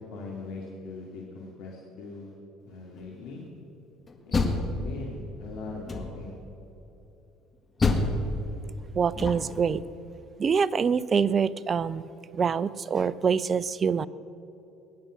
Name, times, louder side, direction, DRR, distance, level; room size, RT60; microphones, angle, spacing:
voice 1, 0.1-2.3 2.7-3.4 4.3-4.4 4.7-6.3, left 3 dB, 65° left, -2 dB, 2.5 m, -40 dB
Door, 4.1-5.3 5.9-6.4 7.8-9.7, left 3 dB, 30° left, 1.9 m, -28 dB
voice 2, 8.9-9.8 10.4-14.1, right 6 dB, 35° right, 18 dB, 0.6 m, -25 dB
21.0 x 10.5 x 6.4 m, 3.0 s
hypercardioid pair, 65°, 0 cm